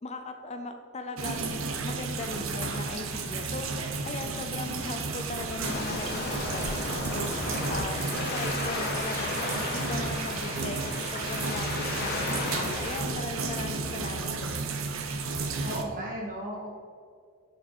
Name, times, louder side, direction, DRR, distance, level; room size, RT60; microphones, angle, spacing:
voice 1, 0.0-3.7 4.0-7.3 7.7-8.0 8.3-14.7, left 3 dB, 30° left, 6 dB, 0.5 m, -38 dB
sound 1, 1.2-15.8, right 4 dB, 65° right, 0.8 m, -33 dB
Waves surf, 5.6-13.0, left 2 dB, 50° left, 1.4 m, -34 dB
voice 2, 15.6-16.7, right 1 dB, 40° right, -3 dB, 2.3 m, -35 dB
10.5 x 5.6 x 4.2 m, 2.1 s
head